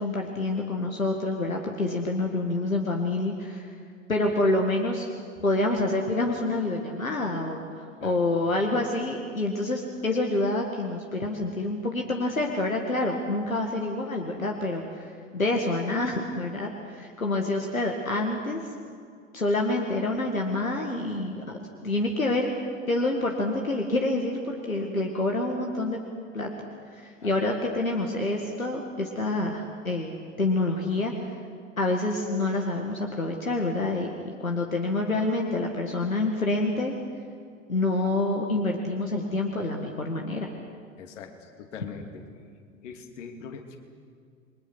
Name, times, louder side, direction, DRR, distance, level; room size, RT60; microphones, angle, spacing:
voice 1, 0.0-3.7 4.1-5.1 5.4-18.6 19.3-22.5 22.9-26.0 26.3-26.5 27.0-31.1 31.8-36.9 37.7-40.5, left 2 dB, 85° left, 2 dB, 2.0 m, -27 dB
voice 2, 41.0-42.2 42.8-43.8, left 6 dB, 60° left, 5 dB, 2.9 m, -41 dB
29.0 x 22.5 x 6.2 m, 2.2 s
figure-of-eight pair, 80°, 40 cm